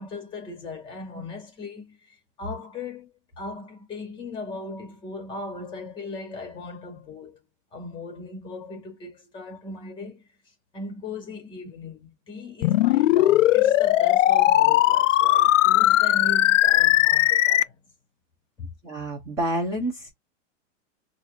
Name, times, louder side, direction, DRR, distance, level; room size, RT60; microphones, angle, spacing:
voice 1, 0.0-7.4 7.7-10.3 10.7-17.8 18.6-18.7, left 3 dB, 10° left, 1.8 m, -38 dB
sound 1, 12.6-17.6, left 14 dB, 75° left, 0.5 m, -18 dB
voice 2, 18.8-20.1, right 1 dB, 10° right, 0.6 m, -28 dB
4.5 x 2.6 x 2.4 m
supercardioid pair, 175°, 38 cm